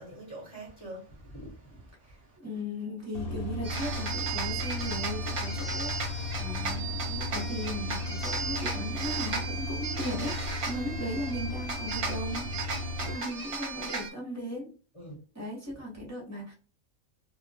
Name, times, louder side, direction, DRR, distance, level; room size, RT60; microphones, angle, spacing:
voice 1, 0.0-2.4 14.9-15.2, right 1 dB, 25° left, 0.9 m, -45 dB
voice 2, 2.0-12.5 13.0-14.7 15.3-16.5, equal, 15° right, 0.7 m, -37 dB
sound 1, 3.1-13.2, left 2 dB, 60° left, 0.8 m, -36 dB
sound 2, 3.6-14.1, right 4 dB, 55° right, 0.8 m, -35 dB
2.2 x 2.2 x 2.6 m
omnidirectional pair, 1.4 m